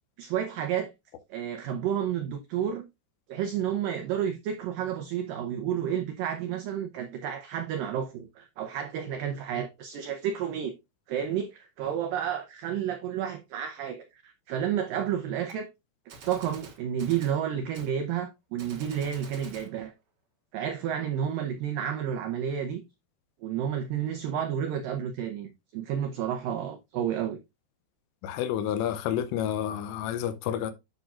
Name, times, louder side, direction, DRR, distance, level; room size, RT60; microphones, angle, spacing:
voice 1, 0.2-0.9 1.3-2.8 3.3-10.8 11.1-15.7 16.3-19.9 20.5-22.8 23.4-27.4, right 9 dB, 90° right, 1.9 m, -31 dB
Gunshot gunfire, 15.5-15.6 16.1-17.4 17.7-17.9 18.6-19.7, right 4 dB, 65° right, 1.5 m, -47 dB
voice 2, 28.2-30.7, left 10 dB, 85° left, 2.9 m, -29 dB
9.3 x 5.8 x 2.4 m
omnidirectional pair, 4.9 m